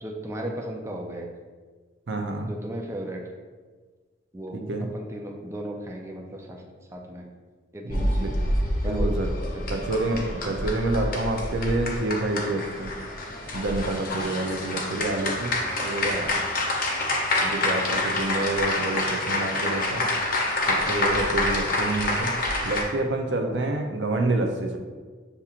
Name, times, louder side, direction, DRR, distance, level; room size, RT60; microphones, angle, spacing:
voice 1, 0.0-1.3 2.4-3.2 4.3-4.6 4.9-6.6 6.9-7.2 7.7-8.3 8.8-9.1 9.5-9.6, right 1 dB, 15° right, 0 dB, 0.4 m, -35 dB
voice 2, 2.1-2.5 4.5-4.9 8.0-8.4 8.8-9.3 9.7-12.9 13.5-16.3 17.4-20.1 20.7-22.4 22.6-24.8, right 2 dB, 65° right, 4 dB, 0.5 m, -28 dB
sound 1, 7.9-22.8, left 1 dB, 50° left, 0.6 m, -27 dB
6.9 x 2.8 x 2.4 m, 1.5 s
head